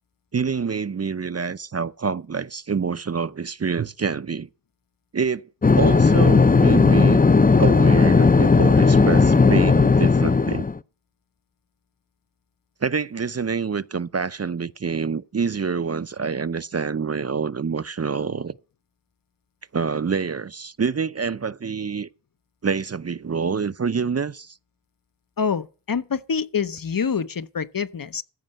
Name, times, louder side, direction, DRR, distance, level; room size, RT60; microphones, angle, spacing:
voice 1, 0.3-4.5 5.1-5.4 5.7-7.2 7.6-10.6 12.8-18.5 19.7-22.1 22.6-24.5, right 5 dB, 35° right, 0.5 m, -26 dB
sound 1, 5.6-10.8, left 4 dB, 20° left, 0.5 m, -16 dB
voice 2, 25.4-28.2, left 6 dB, 50° left, 0.8 m, -26 dB
14.5 x 5.4 x 7.6 m
cardioid pair, 50°, 43 cm